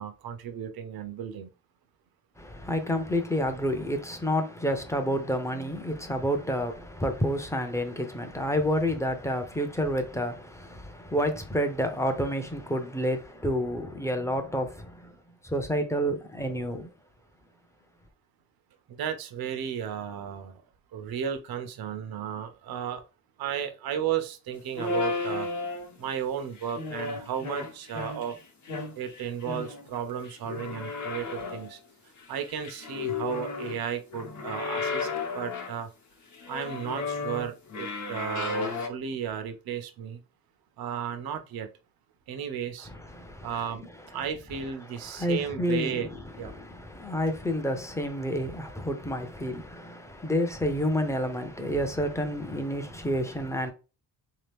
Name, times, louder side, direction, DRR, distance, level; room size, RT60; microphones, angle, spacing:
voice 1, 0.0-1.5 18.9-20.6 20.9-23.0 23.4-25.5 26.0-28.4 29.0-31.8 32.3-35.1 35.3-35.9 36.5-40.2 40.8-41.7 42.3-42.9 43.4-46.1 46.4-46.5, right 8 dB, 85° right, 0.7 m, -34 dB
voice 2, 2.4-15.1 15.4-16.9 42.9-43.5 44.1-44.3 45.0-53.7, equal, 10° left, 0.5 m, -29 dB
sound 1, 24.7-26.1 26.6-28.4 28.7-29.9 30.2-31.7 32.2-33.8 34.1-35.8 36.3-38.9, left 4 dB, 55° left, 0.9 m, -33 dB
3.7 x 2.8 x 3.3 m
wide cardioid pair, 165°, 36 cm